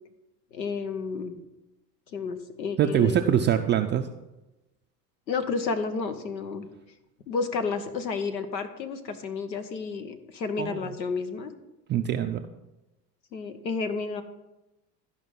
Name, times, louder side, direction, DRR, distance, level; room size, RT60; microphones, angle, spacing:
voice 1, 0.5-1.3 2.1-3.5 5.3-6.7 7.3-11.5 13.3-14.2, left 4 dB, 90° left, 7 dB, 1.0 m, -31 dB
voice 2, 2.8-4.0 10.6-10.9 11.9-12.5, right 10 dB, 25° right, 6 dB, 0.4 m, -24 dB
12.5 x 5.1 x 5.5 m, 0.98 s
hypercardioid pair, 75°, 50 cm